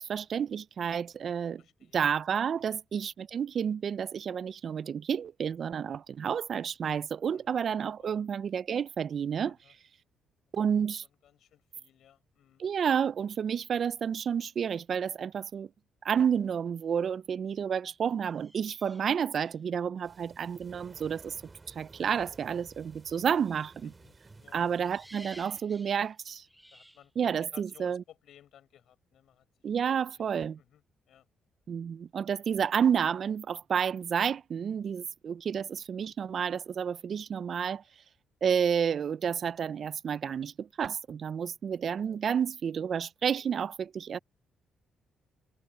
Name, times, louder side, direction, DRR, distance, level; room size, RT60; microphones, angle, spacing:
voice 1, 0.0-1.6 1.9-9.6 10.5-11.0 12.6-15.7 16.0-21.3 21.7-23.9 24.5-26.4 27.2-28.0 29.6-30.6 31.7-37.8 38.4-44.2, right 7 dB, 55° right, 0.3 m, -30 dB
voice 2, 1.6-2.0 2.7-2.8 7.3-7.6 8.0-8.2 9.4-9.7 11.0-12.7 23.8-24.6 26.7-29.4 29.9-30.3 30.6-31.3 32.3-32.4, left 11 dB, 75° left, 6.3 m, -58 dB
sound 1, 16.8-17.0 18.2-19.6 23.4-23.9 24.7-27.1, equal, 5° right, 0.8 m, -55 dB
sound 2, 20.0-25.5, right 3 dB, 25° right, 2.4 m, -55 dB
cardioid pair, 90°, 0 cm